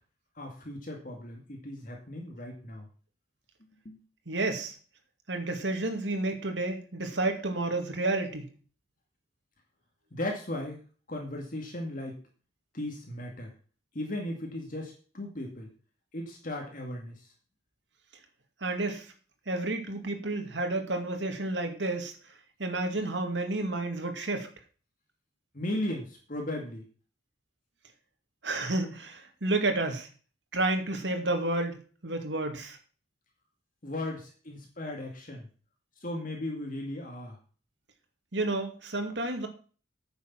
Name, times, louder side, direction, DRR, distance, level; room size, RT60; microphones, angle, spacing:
voice 1, 0.4-2.9 3.6-4.0 10.1-10.8 11.1-12.2 12.7-13.5 13.9-15.7 16.1-17.3 25.5-26.9 33.8-35.5 36.0-37.4, left 1 dB, 50° left, 1 dB, 2.2 m, -36 dB
voice 2, 4.3-4.7 5.3-8.5 18.6-19.1 19.5-22.1 22.6-24.5 28.4-30.1 30.5-31.8 32.0-32.8 38.3-39.5, right 2 dB, 85° right, 5 dB, 2.2 m, -30 dB
9.8 x 7.0 x 6.0 m, 0.39 s
head